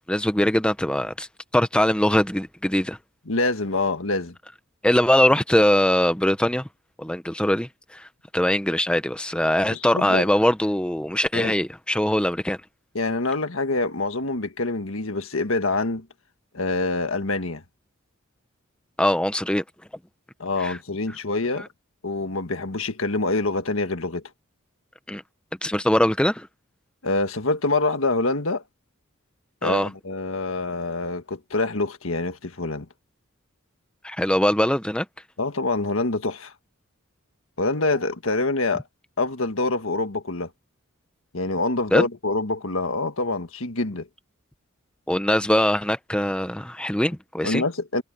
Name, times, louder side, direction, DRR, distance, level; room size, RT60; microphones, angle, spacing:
voice 1, 0.1-1.3 1.5-3.0 4.8-6.6 7.0-8.1 8.3-12.6 19.0-19.6 20.6-20.8 21.5-21.7 25.1-25.2 25.6-26.5 29.6-29.9 34.0-35.1 41.9-42.1 45.1-47.6, left 1 dB, 5° left, 0.8 m, -22 dB
voice 2, 3.3-4.3 9.7-10.3 11.3-11.5 13.0-16.1 16.5-17.6 20.4-21.7 22.0-24.2 27.0-28.6 29.6-32.9 35.4-36.5 37.6-38.8 39.2-40.5 41.3-44.1 47.4-48.0, left 2 dB, 70° left, 1.7 m, -25 dB
head